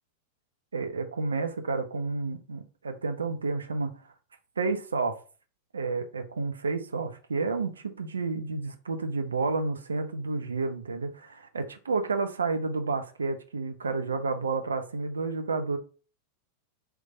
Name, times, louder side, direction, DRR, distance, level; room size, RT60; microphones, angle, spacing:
voice 1, 0.7-4.0 4.6-5.2 5.7-15.8, right 3 dB, 70° right, 0.6 m, -30 dB
3.4 x 3.3 x 3.8 m
figure-of-eight pair, 90°, 0 cm